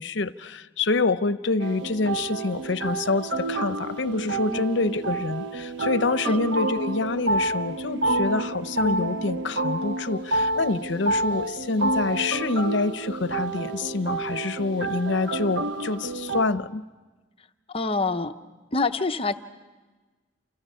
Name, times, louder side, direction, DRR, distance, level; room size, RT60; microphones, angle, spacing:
voice 1, 0.0-16.8, left 3 dB, 70° left, 13 dB, 0.7 m, -26 dB
sound 1, 1.6-16.4, right 2 dB, 65° right, 1.2 m, -29 dB
voice 2, 17.7-18.3 18.7-19.4, left 3 dB, 30° left, 8 dB, 0.7 m, -26 dB
29.0 x 29.0 x 5.6 m, 1.3 s
head